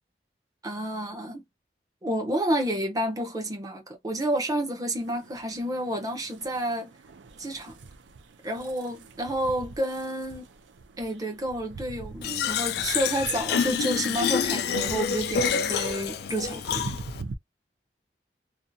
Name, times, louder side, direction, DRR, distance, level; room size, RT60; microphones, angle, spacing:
voice 1, 0.6-1.4 2.0-6.9 7.4-7.8 8.4-10.5 11.0-17.0, right 1 dB, 20° right, 0.7 m, -30 dB
sound 1, 4.9-17.3, right 3 dB, 85° right, 0.5 m, -44 dB
Fill (with liquid), 12.2-17.2, left 7 dB, 60° left, 0.3 m, -27 dB
2.6 x 2.2 x 2.6 m
head